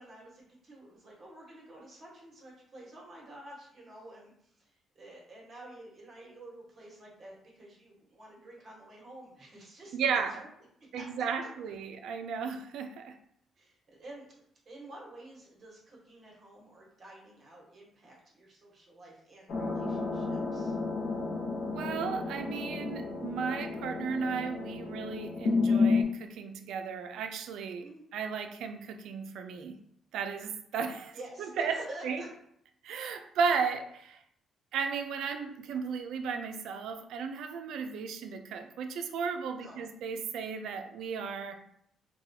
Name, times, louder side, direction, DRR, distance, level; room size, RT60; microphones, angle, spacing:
voice 1, 0.0-4.3 4.6-10.5 10.9-11.1 13.6-20.8 27.8-28.0 31.1-32.3 39.6-39.8, right 1 dB, 45° right, -3 dB, 1.3 m, -49 dB
voice 2, 9.9-10.4 10.9-13.1 21.7-29.8 30.1-31.8 32.0-32.2 32.8-34.2 34.7-41.5, right 6 dB, 80° right, 7 dB, 0.3 m, -34 dB
sound 1, 19.5-26.0, left 4 dB, 65° left, 0.7 m, -31 dB
4.0 x 2.2 x 2.7 m, 0.69 s
cardioid pair, 90°, 0 cm